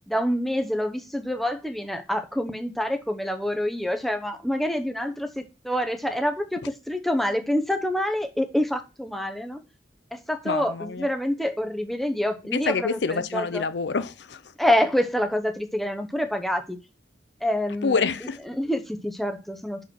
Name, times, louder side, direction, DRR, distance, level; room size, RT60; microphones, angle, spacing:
voice 1, 0.1-9.6 10.1-13.6 14.6-16.8 17.4-18.0 18.5-19.8, equal, ahead, 0.8 m, -27 dB
voice 2, 10.5-11.1 12.5-14.4 17.8-18.4, left 4 dB, 75° left, 0.6 m, -27 dB
6.2 x 5.2 x 6.1 m
head